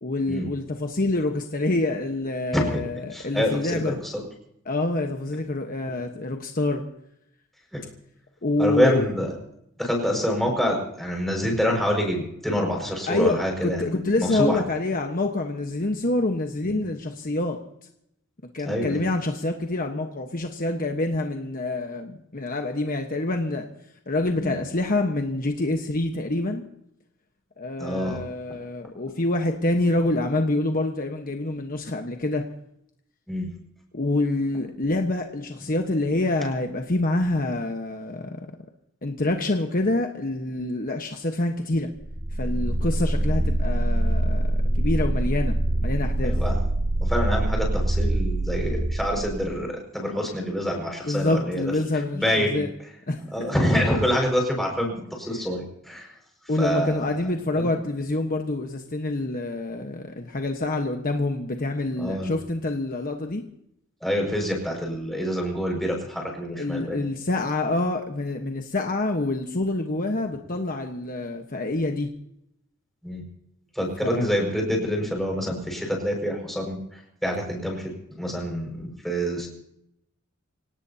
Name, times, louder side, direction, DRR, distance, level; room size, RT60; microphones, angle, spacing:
voice 1, 0.0-4.0 4.6-6.8 8.4-9.0 13.1-17.6 18.5-23.7 24.1-26.7 27.6-32.5 33.9-38.5 39.0-41.9 42.3-45.5 45.8-46.3 51.1-52.7 53.1-53.2 56.5-63.4 66.6-72.1 74.0-74.4, left 2 dB, 45° left, 4 dB, 1.2 m, -26 dB
voice 2, 3.1-4.2 7.7-7.9 8.6-9.3 9.8-14.6 16.6-16.8 18.7-19.0 24.4-24.6 27.8-28.2 33.3-33.5 46.2-46.6 47.0-51.7 52.1-52.6 53.3-56.1 56.6-57.3 57.6-57.7 62.0-62.4 64.0-67.1 73.0-73.2 73.7-79.5, equal, ahead, 0 dB, 5.5 m, -26 dB
sound 1, 42.0-49.6, right 1 dB, 65° right, 2.8 m, -24 dB
26.5 x 18.0 x 2.8 m, 0.76 s
head